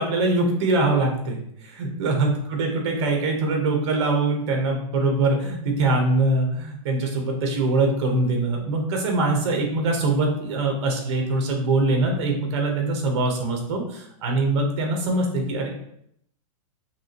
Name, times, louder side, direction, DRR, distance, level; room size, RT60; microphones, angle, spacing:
voice 1, 0.0-15.7, right 2 dB, 50° right, 2 dB, 1.2 m, -23 dB
6.0 x 2.5 x 2.9 m, 0.74 s
supercardioid pair, 170°, 18 cm